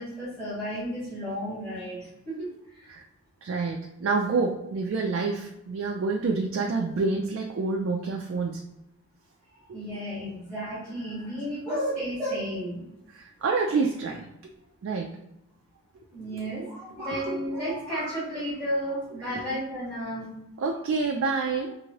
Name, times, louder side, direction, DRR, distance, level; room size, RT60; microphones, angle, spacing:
voice 1, 0.0-3.0 9.7-12.8 16.1-20.3, equal, ahead, -13 dB, 1.2 m, -33 dB
voice 2, 3.4-8.6 13.1-14.3 14.8-15.1 17.3-17.4 19.2-19.5 20.6-21.8, right 4 dB, 60° right, 1 dB, 0.3 m, -28 dB
2.9 x 2.6 x 2.8 m, 0.87 s
head